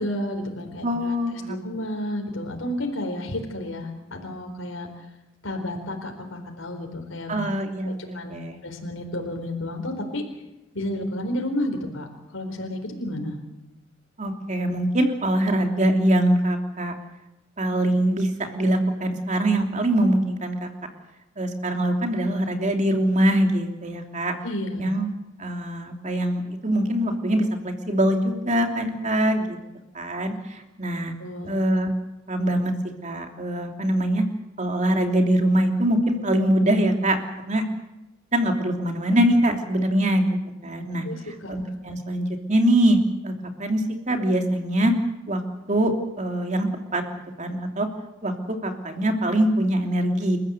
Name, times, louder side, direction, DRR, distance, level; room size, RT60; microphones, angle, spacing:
voice 1, 0.0-4.9 5.4-7.4 7.8-10.2 10.7-12.1 12.3-13.4 24.4-24.8 31.2-31.5 41.0-41.5, left 1 dB, 80° left, 3 dB, 4.3 m, -31 dB
voice 2, 0.8-1.6 7.3-8.6 14.2-16.9 17.6-20.7 21.4-24.3 24.8-25.1 25.4-29.6 29.9-31.1 31.5-31.9 32.3-32.7 33.0-34.2 34.6-37.2 37.5-37.6 38.3-40.3 40.6-41.0 41.5-43.0 43.2-43.3 43.6-43.8 44.1-44.9 45.3-45.4 45.7-47.0 47.4-47.9 48.2-48.3 48.6-50.4, right 1 dB, 35° right, 4 dB, 3.0 m, -23 dB
29.0 x 14.5 x 8.2 m, 0.97 s
head